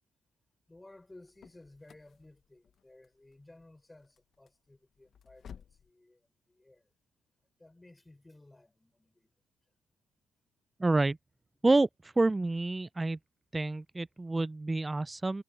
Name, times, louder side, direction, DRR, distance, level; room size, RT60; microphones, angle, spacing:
voice 1, 0.7-6.2 6.5-6.9 7.6-9.3 11.6-11.7, left 2 dB, 15° left, 6.0 m, -57 dB
sound 1, 0.9-5.9, left 8 dB, 55° left, 0.9 m, -56 dB
voice 2, 10.8-11.2 11.6-11.9 12.2-13.2 13.5-15.4, right 2 dB, 20° right, 0.4 m, -28 dB
cardioid pair, 90°, 0 cm